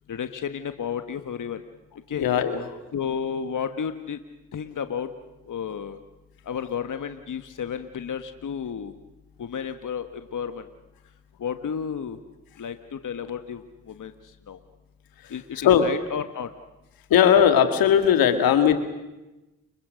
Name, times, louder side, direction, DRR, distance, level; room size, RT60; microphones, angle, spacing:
voice 1, 0.1-1.6 2.1-2.2 2.9-4.2 4.5-5.1 5.5-6.0 6.4-8.9 9.4-10.6 11.4-12.2 12.6-14.1 14.5-14.6 15.3-16.5, left 7 dB, 60° left, 9 dB, 1.5 m, -32 dB
voice 2, 2.1-2.6 15.6-15.9 17.1-18.8, left 9 dB, 85° left, 8 dB, 2.0 m, -18 dB
29.5 x 24.0 x 6.4 m, 1.0 s
supercardioid pair, 45°, 35 cm